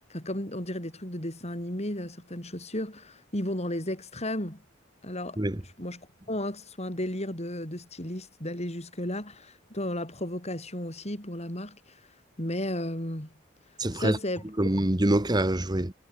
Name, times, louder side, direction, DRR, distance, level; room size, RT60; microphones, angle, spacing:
voice 1, 0.1-4.6 5.0-5.4 5.8-12.0 12.4-13.3 14.0-14.4, left 1 dB, 30° left, 7.0 m, -34 dB
voice 2, 13.8-14.2 14.6-15.9, right 1 dB, 20° right, 1.2 m, -25 dB
head